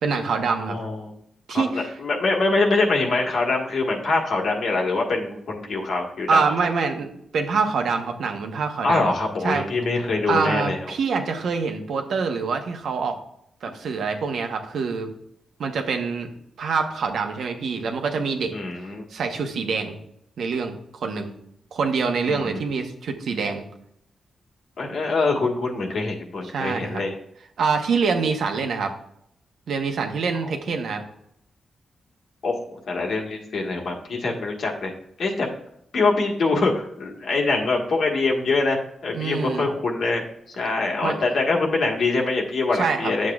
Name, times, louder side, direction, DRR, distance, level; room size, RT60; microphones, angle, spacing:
voice 1, 0.0-0.8 1.5-2.0 6.3-7.1 7.3-9.1 9.4-9.6 10.3-13.2 13.6-15.1 15.6-16.3 16.6-18.6 19.1-20.0 20.4-21.3 21.7-23.6 26.4-27.0 27.6-28.9 29.7-31.0 39.1-39.7 41.0-41.2 42.7-43.3, right 5 dB, 70° right, 5 dB, 1.0 m, -25 dB
voice 2, 0.7-1.1 1.5-6.4 8.8-10.8 18.5-19.0 22.3-22.6 24.8-27.1 30.4-30.5 32.4-34.9 35.2-35.5 35.9-38.8 39.0-40.2 40.6-43.3, left 3 dB, 65° left, 0 dB, 1.5 m, -24 dB
9.6 x 7.4 x 2.4 m, 0.73 s
wide cardioid pair, 135°, 0 cm